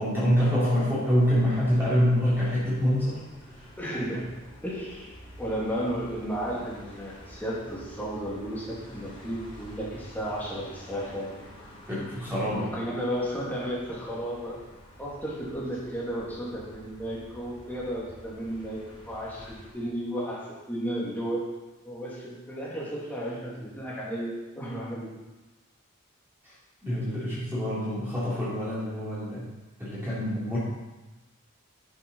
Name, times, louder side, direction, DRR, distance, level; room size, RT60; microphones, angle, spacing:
voice 1, 0.0-3.2 3.5-3.7 11.9-12.7 26.8-29.5 29.8-30.6, equal, 10° right, -10 dB, 3.7 m, -26 dB
sound 1, 1.0-19.7, equal, 25° left, 3.7 m, -49 dB
voice 2, 3.8-4.3 4.6-5.1 5.4-11.4 12.5-14.6 15.0-21.5 21.8-25.1, equal, 10° left, -6 dB, 2.9 m, -33 dB
11.0 x 7.4 x 5.7 m, 1.1 s
head